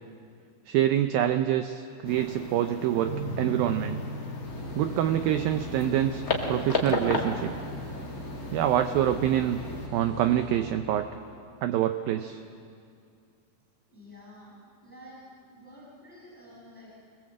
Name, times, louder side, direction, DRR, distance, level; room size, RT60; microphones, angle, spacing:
voice 1, 0.7-4.0 4.8-6.2 6.5-7.6 8.5-9.6 9.9-11.1 11.6-12.4, right 11 dB, 90° right, 8 dB, 2.0 m, -26 dB
sound 1, 2.0-9.9, left 2 dB, 80° left, 0.8 m, -35 dB
sound 2, 3.0-10.7, right 1 dB, 15° right, 8.3 m, -40 dB
sound 3, 4.4-10.7, right 1 dB, 35° right, 7.2 m, -41 dB
voice 2, 13.9-16.9, equal, ahead, -6 dB, 6.6 m, -50 dB
25.0 x 20.5 x 7.6 m, 2.3 s
omnidirectional pair, 5.0 m